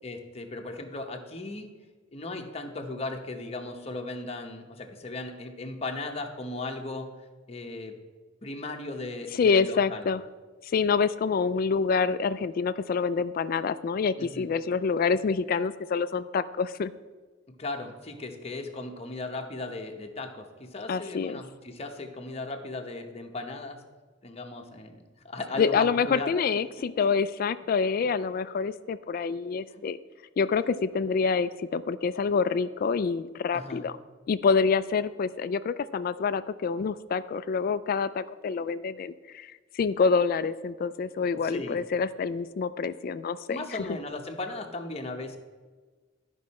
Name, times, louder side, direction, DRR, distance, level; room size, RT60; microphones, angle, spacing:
voice 1, 0.0-1.7 2.1-7.1 7.5-7.9 8.4-10.1 14.2-14.5 17.6-23.8 24.2-26.4 29.7-29.8 33.5-33.9 41.4-41.8 43.5-45.4, left 2 dB, 35° left, 3 dB, 0.9 m, -37 dB
voice 2, 9.4-10.2 10.6-16.9 20.9-21.4 25.6-30.0 30.4-34.0 34.3-43.6, left 5 dB, 50° left, 14 dB, 0.3 m, -27 dB
12.5 x 5.5 x 4.2 m, 1.4 s
head